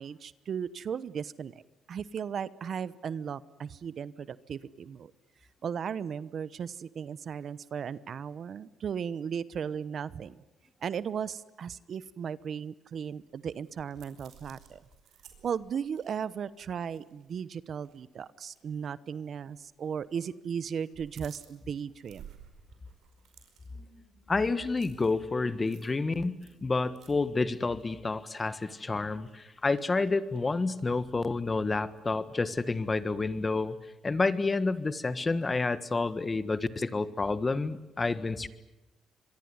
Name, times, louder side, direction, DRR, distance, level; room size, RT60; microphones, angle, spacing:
voice 1, 0.0-1.6 1.9-5.1 5.6-10.4 10.8-14.8 15.4-22.2, right 7 dB, 55° right, 17 dB, 1.0 m, -36 dB
sound 1, 13.1-17.5 17.8-18.0 18.4-18.6 19.5-20.1 20.4-31.3, right 9 dB, 80° right, 5.0 m, -57 dB
voice 2, 24.3-26.3 26.6-33.8 34.0-38.5, left 3 dB, 25° left, 14 dB, 1.6 m, -29 dB
25.5 x 22.5 x 9.7 m, 0.96 s
cardioid pair, 90°, 0 cm